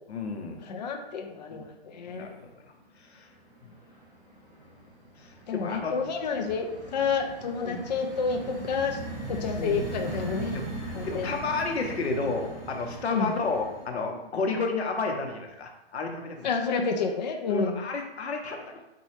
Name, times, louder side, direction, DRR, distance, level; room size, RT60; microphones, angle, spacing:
voice 1, 0.1-0.6 1.5-1.7 2.1-2.4 3.0-3.3 3.6-3.7 5.2-6.0 7.6-7.8 9.6-9.8 10.5-10.6 11.1-16.5 17.5-18.8, left 3 dB, 75° left, 3 dB, 0.8 m, -31 dB
voice 2, 0.6-2.3 5.5-9.0 9.3-10.6 10.9-11.3 13.1-13.3 16.4-17.8, left 5 dB, 40° left, 4 dB, 0.4 m, -29 dB
sound 1, 0.8-1.3 1.6-2.4 2.7-13.9, right 1 dB, ahead, 0.7 m, -40 dB
4.1 x 2.3 x 3.1 m, 0.96 s
hypercardioid pair, 145°, 32 cm